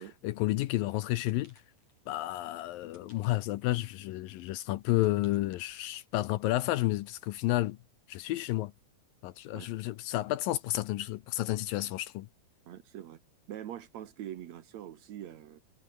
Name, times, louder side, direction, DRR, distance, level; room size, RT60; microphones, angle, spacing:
voice 1, 0.0-1.6 2.1-7.8 8.1-8.7 9.2-12.3, left 16 dB, 75° left, 2.2 m, -31 dB
sound 1, 1.2-2.0 2.9-3.8 4.2-4.3 4.9-6.5, left 3 dB, 45° left, 9.3 m, -64 dB
voice 2, 12.7-13.2 13.5-15.6, right 11 dB, 70° right, 1.7 m, -44 dB
omnidirectional pair, 4.7 m